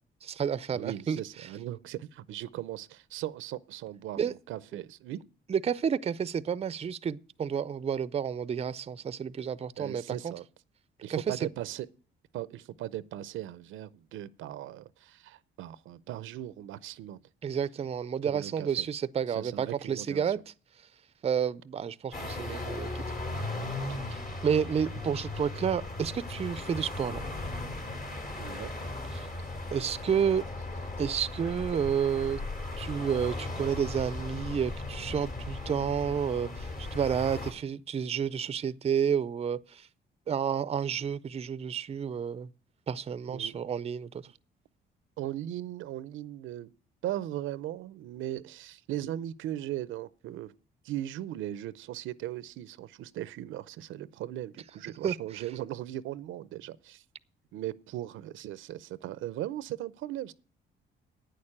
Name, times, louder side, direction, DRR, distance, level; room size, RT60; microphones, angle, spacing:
voice 1, 0.2-1.2 4.2-4.3 4.7-4.8 5.5-10.3 11.1-11.4 17.4-20.5 21.2-23.0 24.1-27.3 29.1-29.3 29.7-30.4 31.0-32.4 32.8-39.9 40.3-42.5 42.9-44.3 55.0-55.1, right 7 dB, 30° right, 0.5 m, -30 dB
voice 2, 0.7-5.2 9.8-10.4 11.0-11.9 12.3-17.2 18.2-18.9 19.3-20.3 28.4-28.7 31.4-31.5 43.3-43.5 45.2-46.7 47.0-50.5 50.8-57.0 57.5-60.3, right 13 dB, 85° right, 0.6 m, -38 dB
sound 1, 22.1-37.5, left 2 dB, 50° left, 2.8 m, -37 dB
9.2 x 6.7 x 8.6 m
cardioid pair, 90°, 20 cm